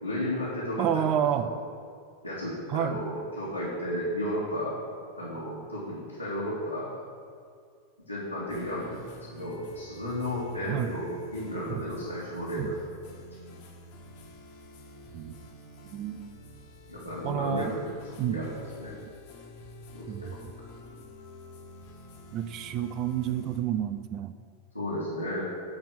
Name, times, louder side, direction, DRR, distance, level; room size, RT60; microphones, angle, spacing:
voice 1, 0.0-1.6 2.2-4.8 5.2-7.0 8.1-12.7 16.9-18.9 19.9-20.4 24.7-25.5, left 1 dB, 90° left, -8 dB, 2.2 m, -33 dB
voice 2, 0.8-1.5 2.7-3.0 10.7-10.9 11.7-11.8 12.6-12.7 15.1-15.3 15.9-16.2 17.2-17.7 18.2-18.4 20.1-20.3 22.3-24.3, right 10 dB, 35° right, 11 dB, 0.5 m, -29 dB
sound 1, 8.5-23.6, left 1 dB, 50° left, 1.5 m, -48 dB
10.5 x 4.4 x 7.7 m, 2.2 s
figure-of-eight pair, 90°, 0 cm